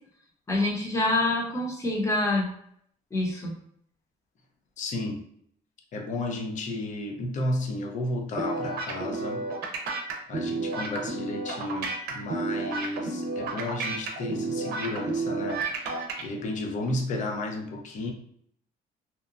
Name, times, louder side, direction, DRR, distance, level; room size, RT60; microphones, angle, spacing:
voice 1, 0.5-2.5 3.1-3.5, left 2 dB, 15° left, -1 dB, 0.8 m, -26 dB
voice 2, 4.8-5.2 5.9-9.4 10.3-15.6 16.2-18.1, left 1 dB, 45° left, 3 dB, 0.6 m, -32 dB
sound 1, 8.4-16.2, right 3 dB, 70° right, 0.6 m, -31 dB
2.8 x 2.1 x 2.4 m, 0.67 s
cardioid pair, 110°, 17 cm